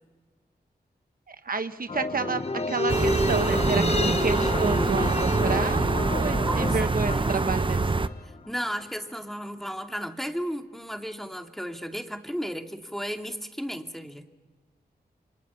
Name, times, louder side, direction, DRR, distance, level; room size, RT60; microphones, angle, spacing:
voice 1, 1.3-2.4 2.7-7.9, right 4 dB, 60° right, 9 dB, 1.2 m, -30 dB
sound 1, 1.9-8.5 8.7-8.8, left 3 dB, 40° left, 1.1 m, -31 dB
Bowed string instrument, 2.6-8.3, left 4 dB, 85° left, 4.2 m, -56 dB
sound 2, 2.9-8.1, right 3 dB, 30° right, 0.8 m, -25 dB
voice 2, 6.4-7.3 8.5-14.4, equal, ahead, 4 dB, 2.5 m, -34 dB
29.0 x 25.0 x 5.8 m, 1.2 s
cardioid pair, 60°, 17 cm